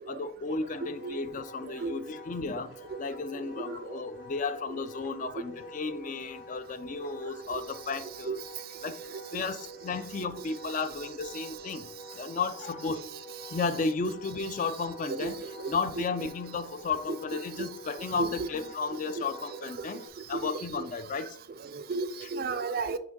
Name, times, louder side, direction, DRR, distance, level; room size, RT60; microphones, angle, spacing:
voice 1, 0.1-8.4 8.8-9.0 9.3-11.9 12.1-13.0 13.5-20.0 20.3-21.4 22.2-22.3, left 4 dB, 40° left, 0.3 m, -33 dB
Wind instrument woodwind instrument, 0.6-20.1, right 1 dB, 55° left, 1.3 m, -47 dB
voice 2, 0.8-1.2 1.8-1.9 2.9-3.0 3.6-3.8 4.7-4.8 8.2-8.4 9.3-9.4 15.1-16.0 17.1-17.2 17.6-17.7 18.2-18.5 18.9-19.0 20.3-20.9 21.7-23.0, right 4 dB, 45° right, 0.4 m, -34 dB
6.2 x 4.5 x 3.6 m
head